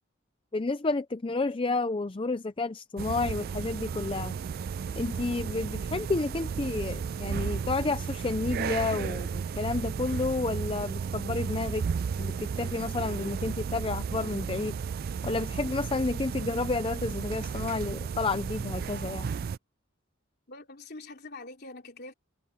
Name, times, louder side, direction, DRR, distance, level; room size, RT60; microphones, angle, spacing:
voice 1, 0.5-4.4 5.0-11.9 12.2-14.7 15.2-19.3, left 3 dB, 25° left, 0.5 m, -31 dB
sound 1, 3.0-19.6, right 6 dB, 45° right, 0.3 m, -34 dB
voice 2, 20.5-22.1, left 2 dB, 50° left, 3.6 m, -44 dB
head